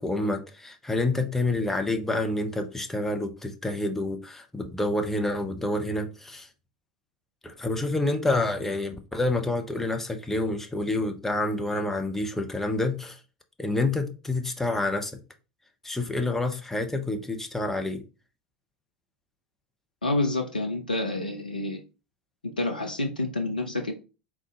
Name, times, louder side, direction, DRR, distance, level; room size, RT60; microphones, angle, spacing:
voice 1, 0.0-6.5 7.4-13.2 13.6-15.2 15.8-18.0, left 2 dB, 5° left, 0.8 m, -28 dB
voice 2, 20.0-21.8 22.6-23.9, left 2 dB, 85° left, 0.5 m, -28 dB
3.7 x 3.0 x 3.7 m
figure-of-eight pair, 75°, 5 cm